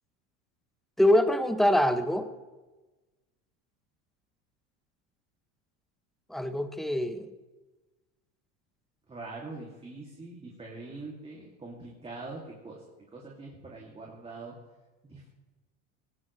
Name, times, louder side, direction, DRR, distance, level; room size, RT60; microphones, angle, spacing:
voice 1, 1.0-2.3 6.3-7.3, left 1 dB, ahead, 8 dB, 1.0 m, -24 dB
voice 2, 9.1-14.6 15.0-15.3, right 3 dB, 15° right, -2 dB, 2.6 m, -43 dB
18.5 x 18.0 x 3.3 m, 1.2 s
supercardioid pair, 120°, 36 cm